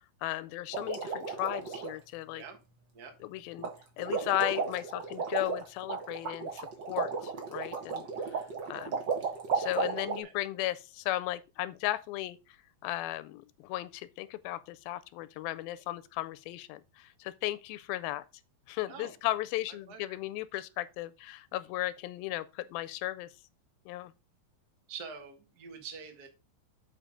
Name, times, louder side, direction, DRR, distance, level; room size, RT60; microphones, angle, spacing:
voice 1, 0.2-2.4 3.2-3.7 4.0-9.0 9.5-12.4 12.8-18.2 18.7-23.3 23.9-24.1, left 15 dB, 85° left, 2.4 m, -35 dB
sound 1, 0.7-1.9 3.6-3.7 4.0-10.2, right 5 dB, 50° right, 1.4 m, -34 dB
voice 2, 18.9-19.3 19.9-20.2 24.9-26.3, right 6 dB, 70° right, 0.9 m, -45 dB
7.5 x 4.8 x 5.0 m
omnidirectional pair, 4.2 m